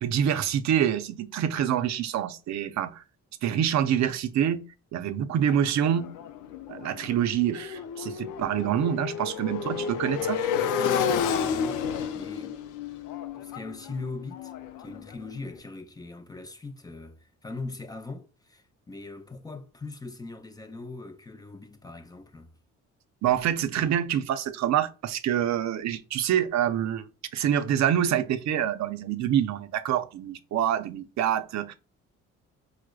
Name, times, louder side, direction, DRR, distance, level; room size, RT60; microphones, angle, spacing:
voice 1, 0.0-3.0 3.4-4.6 4.9-6.1 6.7-10.4 23.2-27.1 27.3-31.7, right 10 dB, 65° right, 0.5 m, -26 dB
Motorcycle, 5.5-15.3, left 7 dB, 90° left, 0.5 m, -31 dB
voice 2, 10.8-11.8 12.1-12.6 13.4-14.5 14.8-22.5, left 3 dB, 15° left, 0.5 m, -40 dB
4.7 x 2.1 x 2.2 m
cardioid pair, 90°, 30 cm